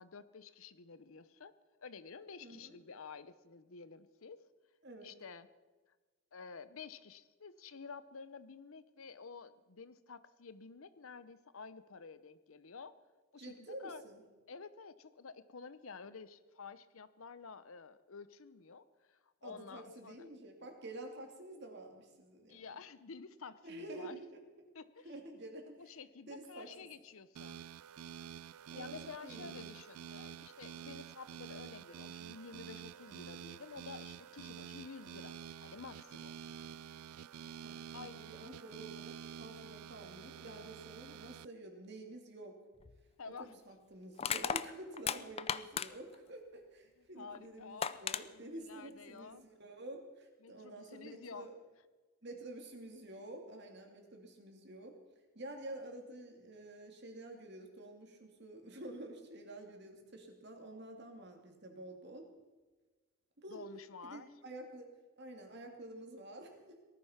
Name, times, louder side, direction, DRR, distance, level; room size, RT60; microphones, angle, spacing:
voice 1, 0.0-4.4 5.0-5.5 6.3-12.9 13.3-14.0 14.5-20.3 22.5-24.2 24.7-25.1 25.8-27.6 28.7-36.4 37.9-38.2 43.2-43.6 47.2-47.9 48.3-49.4 50.4-51.5 63.5-64.3, left 5 dB, 70° left, 15 dB, 0.8 m, -51 dB
voice 2, 2.4-2.8 4.8-5.1 13.4-14.2 19.4-22.6 23.6-24.4 25.0-25.9 26.3-26.7 28.7-29.6 37.6-42.6 43.4-51.6 52.2-55.0 55.3-62.3 63.4-63.6 64.0-64.9 65.2-66.8, right 1 dB, 50° right, 3 dB, 2.6 m, -49 dB
sound 1, 27.4-41.5, right 8 dB, 85° right, 0.4 m, -49 dB
Crushing, 42.8-43.0 44.2-46.2 47.3-47.4 47.8-48.2, left 7 dB, 25° left, 0.4 m, -36 dB
19.0 x 13.0 x 5.8 m, 1.3 s
head